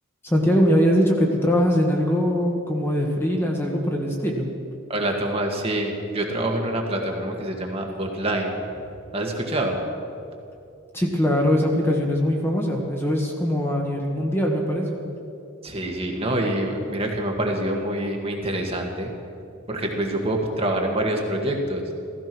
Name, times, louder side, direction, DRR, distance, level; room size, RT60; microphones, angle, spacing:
voice 1, 0.2-4.5 10.9-15.0, equal, 10° left, 0 dB, 1.6 m, -22 dB
voice 2, 4.9-8.6 9.1-9.8 15.6-19.1 19.7-21.8, right 1 dB, 30° right, 1 dB, 1.8 m, -26 dB
15.5 x 15.0 x 6.1 m, 2.5 s
head